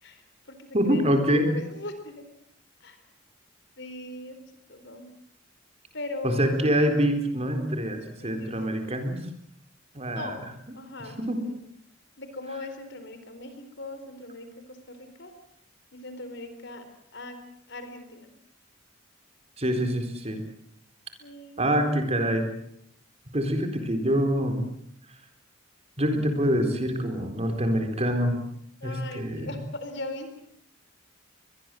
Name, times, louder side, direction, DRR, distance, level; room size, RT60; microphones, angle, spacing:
voice 1, 0.0-1.1 1.4-2.3 2.8-3.0 3.8-4.4 4.7-5.1 5.9-6.5 8.2-8.5 10.1-10.4 10.7-11.6 12.2-15.3 15.9-16.8 17.1-17.4 17.7-18.3 21.2-21.7 23.4-24.1 28.8-30.4, left 2 dB, 60° left, 9 dB, 4.3 m, -40 dB
voice 2, 0.7-1.5 6.2-9.2 9.9-10.4 11.2-11.4 19.6-20.4 21.6-22.5 23.3-24.7 26.0-28.4 28.8-29.5, equal, 30° right, 6 dB, 4.1 m, -25 dB
24.0 x 21.5 x 7.8 m, 0.69 s
head